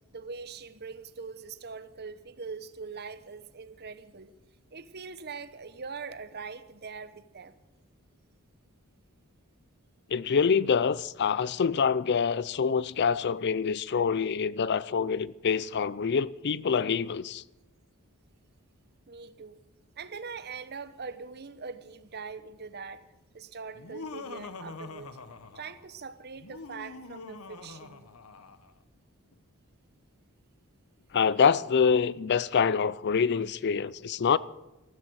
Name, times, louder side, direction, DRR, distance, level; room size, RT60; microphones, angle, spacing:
voice 1, 0.1-4.3 4.7-7.6 19.1-19.6 20.0-23.1 23.3-25.1 25.5-28.1, right 5 dB, 50° right, 0.9 m, -42 dB
voice 2, 10.1-17.4 31.1-34.4, left 6 dB, 50° left, 0.4 m, -26 dB
Laughter, 23.7-25.9 26.4-28.7, left 3 dB, 85° left, 1.0 m, -44 dB
14.5 x 13.0 x 6.3 m
head